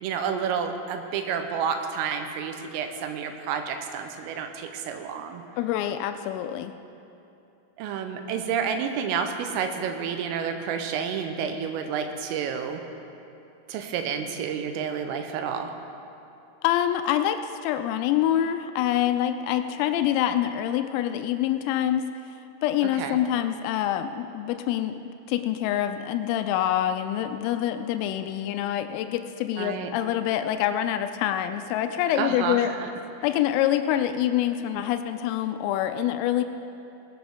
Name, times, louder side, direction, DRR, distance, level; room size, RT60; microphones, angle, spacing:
voice 1, 0.0-5.4 7.8-12.8 13.7-15.7 23.0-23.2 29.6-29.9 32.2-32.9, right 7 dB, 85° right, 6 dB, 3.4 m, -30 dB
voice 2, 5.6-6.7 16.6-22.1 22.6-25.0 25.3-32.7 33.2-36.4, left 11 dB, 90° left, 8 dB, 3.3 m, -26 dB
19.5 x 12.5 x 3.6 m, 2.8 s
omnidirectional pair, 5.9 m